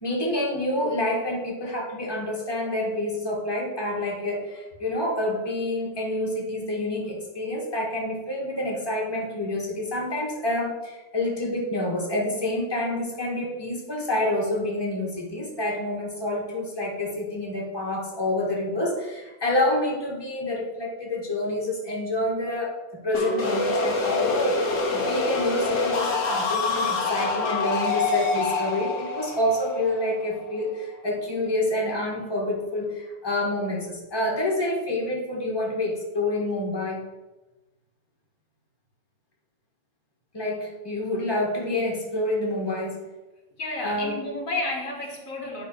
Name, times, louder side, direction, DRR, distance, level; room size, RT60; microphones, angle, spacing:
voice 1, 0.0-22.7 23.0-37.0 40.3-43.0 43.8-44.2, left 1 dB, 20° left, -2 dB, 1.7 m, -28 dB
sound 1, 23.1-30.8, left 3 dB, 70° left, 1.5 m, -26 dB
voice 2, 43.6-45.7, left 2 dB, 85° left, 0 dB, 2.1 m, -31 dB
9.2 x 3.6 x 6.4 m, 1.1 s
omnidirectional pair, 1.4 m